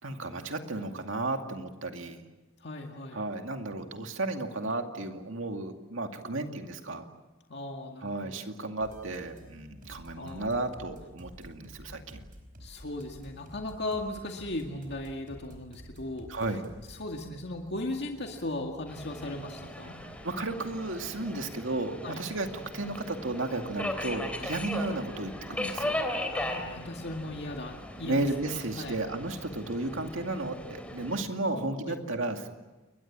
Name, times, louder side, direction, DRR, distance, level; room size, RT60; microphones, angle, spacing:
voice 1, 0.0-2.2 3.1-7.1 8.0-12.2 16.3-16.7 20.0-22.5 22.7-26.0 28.0-32.5, right 2 dB, 70° right, 5 dB, 2.4 m, -33 dB
voice 2, 2.6-3.2 7.5-8.3 10.1-10.6 12.6-16.3 16.9-20.0 22.0-22.2 26.3-28.2 28.8-28.9 31.5-31.9, left 2 dB, 55° left, 2 dB, 2.1 m, -37 dB
sound 1, 8.8-19.5, equal, 45° right, 4.7 m, -51 dB
Subway metro underground, 18.9-31.2, left 1 dB, 5° left, 3.3 m, -38 dB
29.5 x 22.5 x 7.5 m, 1.1 s
head